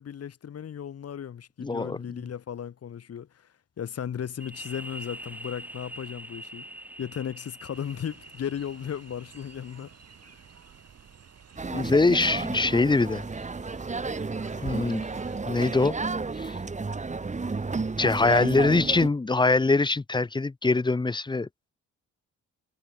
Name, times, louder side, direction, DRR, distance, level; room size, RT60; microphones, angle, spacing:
voice 1, 0.0-3.5 3.8-6.7 7.0-9.9 10.2-10.4 18.2-18.9, left 8 dB, 55° left, 2.9 m, -36 dB
voice 2, 1.6-2.2 11.7-13.2 14.6-15.0 15.5-15.9 16.4-16.6 18.0-21.5, left 3 dB, 15° left, 1.0 m, -23 dB
sound 1, 4.4-11.9, right 1 dB, 5° right, 2.4 m, -45 dB
Fowl, 7.7-15.4, right 8 dB, 55° right, 4.8 m, -50 dB
sound 2, 11.6-19.1, right 4 dB, 25° right, 2.6 m, -32 dB
cardioid pair, 90°, 30 cm